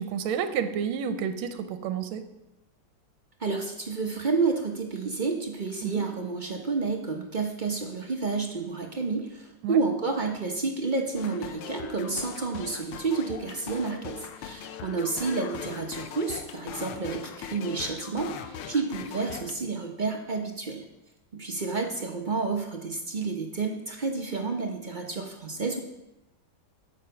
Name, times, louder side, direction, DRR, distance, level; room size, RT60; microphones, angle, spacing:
voice 1, 0.0-2.2 5.8-6.0 9.6-9.8, right 7 dB, 80° right, 9 dB, 1.6 m, -30 dB
voice 2, 3.4-20.8 21.3-25.8, right 4 dB, 55° right, 2 dB, 0.5 m, -30 dB
sound 1, 11.1-19.5, left 8 dB, 90° left, 1.6 m, -40 dB
8.9 x 7.4 x 5.7 m, 0.90 s
omnidirectional pair, 2.3 m